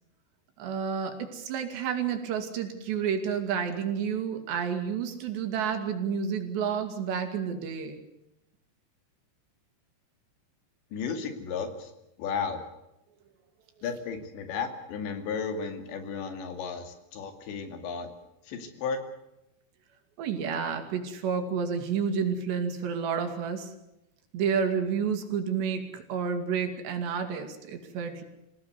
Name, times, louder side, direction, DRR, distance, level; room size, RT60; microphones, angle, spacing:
voice 1, 0.6-8.0 20.2-23.7 24.3-28.2, right 6 dB, 80° right, 5 dB, 4.7 m, -30 dB
voice 2, 10.9-11.9 12.2-12.6 13.8-18.1 18.4-19.0, left 5 dB, 90° left, 7 dB, 4.7 m, -34 dB
26.5 x 17.0 x 8.2 m, 0.88 s
omnidirectional pair, 4.9 m